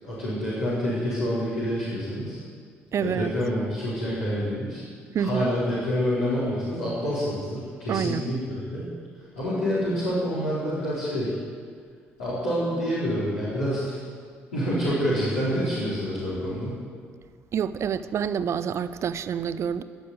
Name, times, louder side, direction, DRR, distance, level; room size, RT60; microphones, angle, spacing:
voice 1, 0.0-2.4 3.0-4.8 5.2-8.8 9.3-11.4 12.2-14.0 14.5-16.8, equal, 70° left, -12 dB, 4.5 m, -27 dB
voice 2, 2.9-3.3 5.1-5.5 7.9-8.2 17.5-19.8, right 8 dB, 45° right, 13 dB, 0.7 m, -27 dB
19.5 x 6.9 x 9.5 m, 2.1 s
figure-of-eight pair, 50°, 7 cm